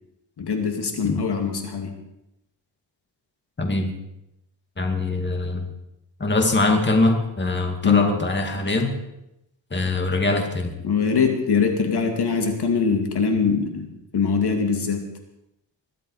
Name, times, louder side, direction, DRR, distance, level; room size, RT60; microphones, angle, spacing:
voice 1, 0.4-1.9 7.8-8.1 10.8-13.9 14.1-15.0, left 5 dB, 60° left, 4 dB, 2.4 m, -22 dB
voice 2, 3.6-3.9 4.8-5.7 6.2-8.9 9.7-10.7, left 2 dB, 25° left, 4 dB, 2.4 m, -22 dB
22.0 x 12.0 x 4.9 m, 0.88 s
cardioid pair, 100°, 44 cm